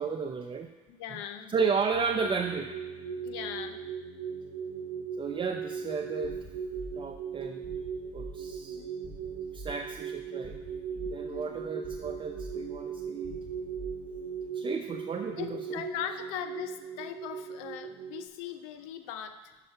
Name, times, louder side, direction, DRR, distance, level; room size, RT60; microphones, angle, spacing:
voice 1, 0.0-0.7 1.5-2.7 5.2-6.4 7.0-7.6 8.1-8.8 9.5-10.6 11.1-13.4 14.5-15.8, right 5 dB, 30° right, 3 dB, 0.5 m, -33 dB
voice 2, 0.9-1.5 3.2-3.8 8.6-8.9 11.3-11.6 15.4-19.4, left 10 dB, 85° left, 9 dB, 0.5 m, -39 dB
sound 1, 1.9-12.1, left 9 dB, 65° left, 1.3 m, -61 dB
sound 2, 2.2-18.3, right 6 dB, 70° right, 0.8 m, -39 dB
sound 3, 6.2-14.5, equal, 25° left, 1.3 m, -47 dB
6.5 x 4.9 x 5.6 m, 1.3 s
supercardioid pair, 75°, 16 cm